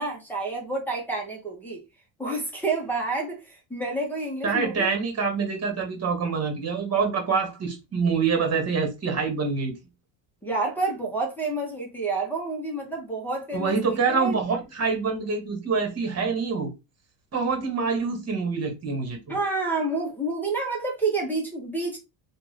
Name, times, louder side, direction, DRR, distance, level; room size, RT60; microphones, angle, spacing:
voice 1, 0.0-1.8 2.2-4.9 10.4-14.4 19.3-22.0, right 3 dB, 5° left, 1.0 m, -29 dB
voice 2, 4.4-9.8 13.5-16.7 17.3-19.3, right 5 dB, 35° right, 1.5 m, -26 dB
3.5 x 2.6 x 3.2 m
cardioid pair, 125°, 46 cm